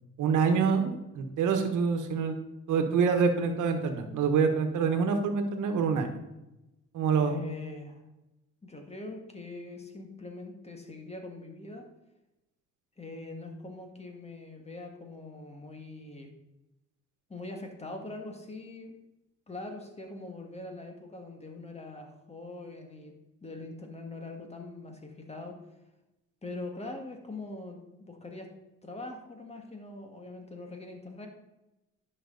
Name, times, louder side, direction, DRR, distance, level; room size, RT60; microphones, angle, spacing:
voice 1, 0.2-2.4 2.7-6.1 6.9-7.3, right 5 dB, 80° right, 7 dB, 1.3 m, -26 dB
voice 2, 7.1-8.0 8.6-11.9 13.0-16.3 17.3-18.9 19.5-23.1 23.4-25.6 26.4-28.5 28.8-31.3, left 2 dB, 20° left, 3 dB, 1.8 m, -42 dB
10.5 x 6.1 x 4.0 m, 0.95 s
cardioid pair, 90°, 30 cm